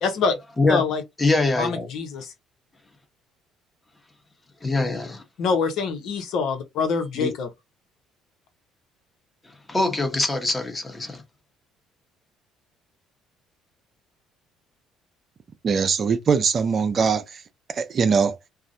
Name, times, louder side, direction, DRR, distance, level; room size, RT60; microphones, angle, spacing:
voice 1, 0.0-0.4 0.7-1.0 1.6-2.3 5.4-7.5, left 5 dB, 65° left, 0.7 m, -25 dB
voice 2, 1.2-1.9 4.6-5.2 7.1-7.3 9.7-11.2, left 2 dB, 20° left, 1.0 m, -23 dB
voice 3, 15.6-17.4 17.7-18.4, right 5 dB, 45° right, 0.4 m, -21 dB
2.4 x 2.0 x 2.6 m
hypercardioid pair, 60°, 0 cm